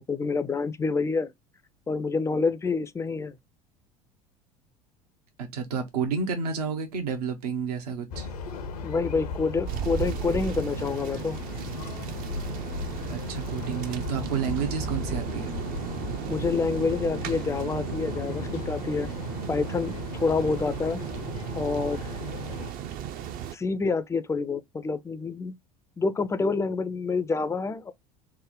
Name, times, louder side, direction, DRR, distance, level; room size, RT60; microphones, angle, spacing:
voice 1, 0.0-1.3 1.9-3.4 8.8-11.4 16.3-19.1 19.5-21.0 21.6-22.1 23.5-25.6 26.0-27.9, left 4 dB, 15° left, 0.4 m, -27 dB
voice 2, 5.4-8.3 13.1-15.5, right 6 dB, 75° right, 0.8 m, -30 dB
sound 1, 8.1-22.7, left 4 dB, 80° left, 0.6 m, -36 dB
sound 2, 9.7-23.6, right 9 dB, 45° right, 0.5 m, -35 dB
3.4 x 2.1 x 3.6 m
hypercardioid pair, 70°, 20 cm